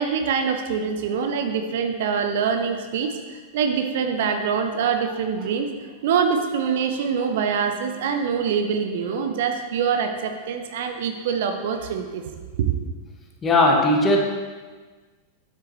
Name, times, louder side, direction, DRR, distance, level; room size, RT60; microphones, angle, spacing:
voice 1, 0.0-5.7 6.0-12.2 12.6-12.7, right 6 dB, 55° right, 6 dB, 0.6 m, -24 dB
voice 2, 13.4-14.2, left 2 dB, 20° left, 0 dB, 1.5 m, -17 dB
9.5 x 7.5 x 3.1 m, 1.4 s
figure-of-eight pair, 90°, 0 cm